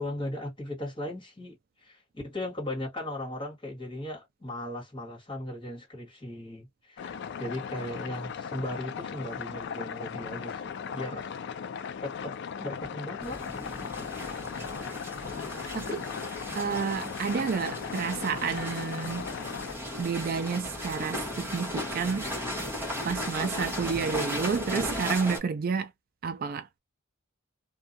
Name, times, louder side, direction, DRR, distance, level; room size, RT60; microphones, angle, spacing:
voice 1, 0.0-11.3 12.0-13.5, left 1 dB, 25° left, 1.6 m, -37 dB
sound 1, 7.0-19.7, left 7 dB, 55° left, 0.3 m, -38 dB
sound 2, 13.2-25.4, left 1 dB, 10° right, 1.1 m, -36 dB
voice 2, 15.7-16.1 16.5-19.3 20.0-22.3 23.0-25.9 26.2-26.7, right 5 dB, 45° right, 0.3 m, -30 dB
2.6 x 2.3 x 2.6 m
head